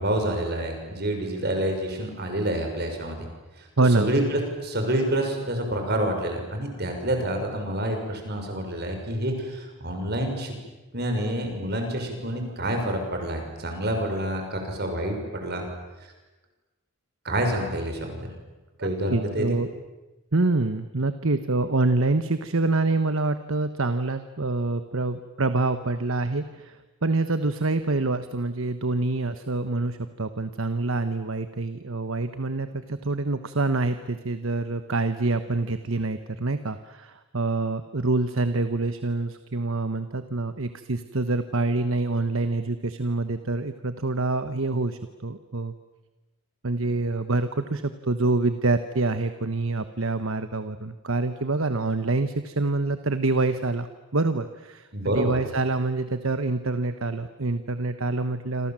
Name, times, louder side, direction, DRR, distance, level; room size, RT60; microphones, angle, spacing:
voice 1, 0.0-3.3 3.9-10.5 10.9-15.6 17.2-18.3 18.8-19.6 54.9-55.3, right 1 dB, 45° right, 4 dB, 6.3 m, -28 dB
voice 2, 3.8-4.1 18.8-19.7 20.3-26.8 27.0-45.7 46.6-53.9 54.1-58.7, right 2 dB, 65° right, 10 dB, 1.2 m, -26 dB
27.5 x 27.5 x 7.6 m, 1.1 s
head